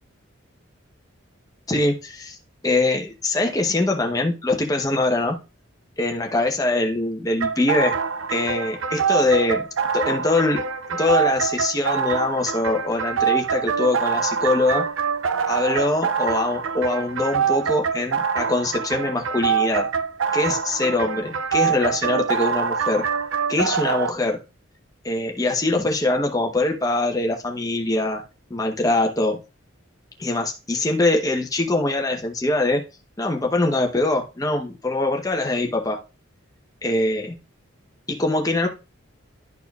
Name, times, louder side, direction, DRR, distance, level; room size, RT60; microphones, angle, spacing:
voice 1, 1.7-2.4 2.6-5.4 6.0-7.9 8.3-9.7 9.9-10.6 10.9-14.9 15.5-19.9 20.3-23.1 23.5-24.4 25.0-28.2 28.5-29.4 30.2-32.8 33.2-36.0 36.8-37.4 38.1-38.7, left 2 dB, 15° left, 2 dB, 0.9 m, -23 dB
sound 1, 7.4-24.1, right 6 dB, 75° right, 0.5 m, -25 dB
12.0 x 4.3 x 2.3 m, 0.29 s
head